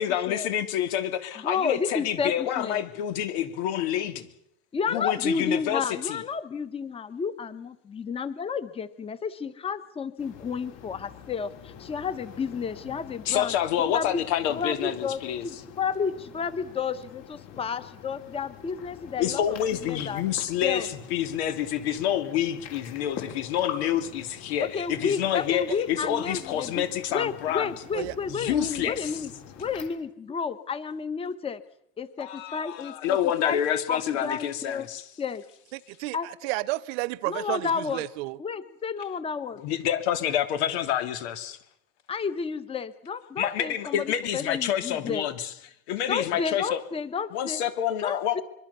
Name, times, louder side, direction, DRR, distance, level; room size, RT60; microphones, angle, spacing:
voice 1, 0.0-4.3 4.9-6.2 13.2-15.4 19.2-27.7 28.3-29.1 32.2-35.0 39.6-41.6 43.4-45.5 45.9-46.8 47.3-48.4, left 10 dB, 85° left, 10 dB, 3.0 m, -28 dB
voice 2, 1.4-2.8 4.7-13.5 13.9-14.2 14.5-19.6 19.8-20.2 20.6-20.9 24.7-26.8 27.1-29.3 29.6-31.6 32.0-33.6 33.9-34.9 35.2-35.4 36.1-36.3 37.2-38.0 38.4-39.6 42.1-45.3 46.1-47.6 48.0-48.4, left 6 dB, 20° left, 14 dB, 1.3 m, -31 dB
sound 1, 10.2-29.9, left 8 dB, 55° left, 6.6 m, -45 dB
voice 3, 35.7-38.4, right 20 dB, 75° right, 20 dB, 1.1 m, -31 dB
25.0 x 23.5 x 7.0 m, 0.75 s
cardioid pair, 160°, 32 cm